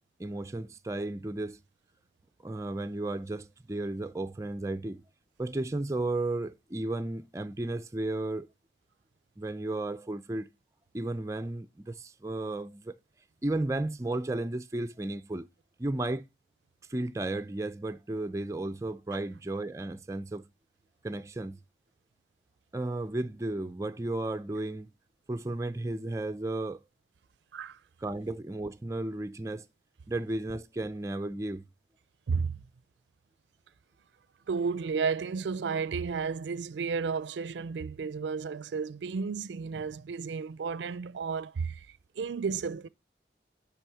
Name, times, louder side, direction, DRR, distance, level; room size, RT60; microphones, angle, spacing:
voice 1, 0.2-1.6 2.4-5.0 5.4-8.5 9.4-10.5 10.9-13.0 13.4-15.5 15.8-16.3 16.9-20.4 21.0-21.6 22.7-24.9 25.3-26.8 28.0-29.7 30.1-31.6, right 2 dB, 15° right, 0.4 m, -34 dB
voice 2, 32.3-32.6 34.5-41.9 42.2-42.9, right 5 dB, 85° right, 0.4 m, -32 dB
10.0 x 3.6 x 6.0 m
head